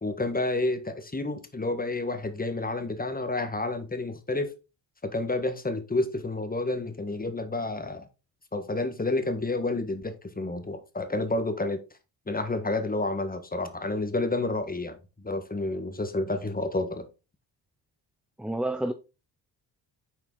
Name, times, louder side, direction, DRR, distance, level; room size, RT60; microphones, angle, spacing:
voice 1, 0.0-4.5 5.0-8.1 8.5-11.8 12.3-15.0 15.2-17.1, left 2 dB, 20° left, 1.6 m, -30 dB
voice 2, 18.4-18.9, right 1 dB, ahead, 0.5 m, -29 dB
7.2 x 4.4 x 3.9 m
supercardioid pair, 60°, 44 cm